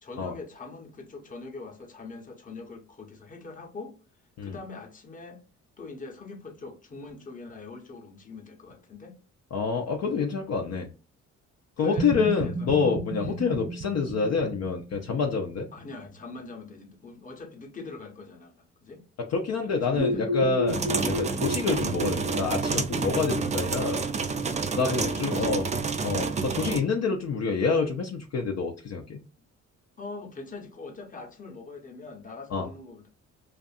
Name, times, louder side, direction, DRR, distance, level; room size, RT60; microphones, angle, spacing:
voice 1, 0.0-3.9 4.4-5.4 5.8-9.1 11.8-12.1 12.4-12.7 13.2-13.4 15.7-19.0 19.6-20.4 21.3-21.5 24.8-25.6 30.0-33.1, left 3 dB, 25° left, 0.8 m, -42 dB
voice 2, 9.5-10.9 11.8-15.7 19.3-24.0 24.8-25.6 26.0-29.2 32.5-32.7, left 5 dB, 60° left, 0.5 m, -27 dB
sound 1, 12.0-15.9 20.0-22.4, equal, 85° right, 1.1 m, -32 dB
sound 2, 20.7-26.8, right 5 dB, 25° right, 0.4 m, -29 dB
2.6 x 2.4 x 2.4 m
cardioid pair, 90°, 30 cm